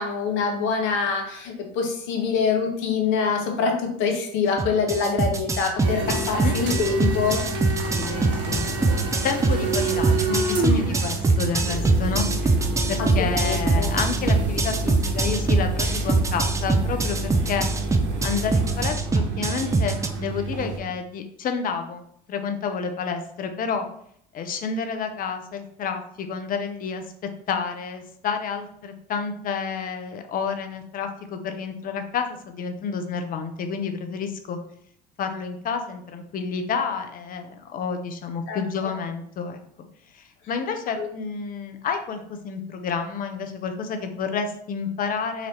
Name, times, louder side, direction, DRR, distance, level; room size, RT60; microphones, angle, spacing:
voice 1, 0.0-7.5 13.0-13.9 38.5-38.9 41.0-41.1, left 5 dB, 65° left, 3 dB, 1.0 m, -25 dB
sound 1, 4.6-20.1, right 3 dB, 15° right, 0.4 m, -23 dB
sound 2, 5.8-20.8, right 2 dB, 60° right, 0.9 m, -28 dB
voice 2, 8.0-8.7 9.2-12.6 12.9-17.7 18.2-23.9 24.3-27.0 27.5-34.6 35.2-39.6 40.1-45.5, left 5 dB, 40° left, 6 dB, 0.7 m, -30 dB
3.9 x 2.7 x 3.2 m, 0.67 s
hypercardioid pair, 75°, 21 cm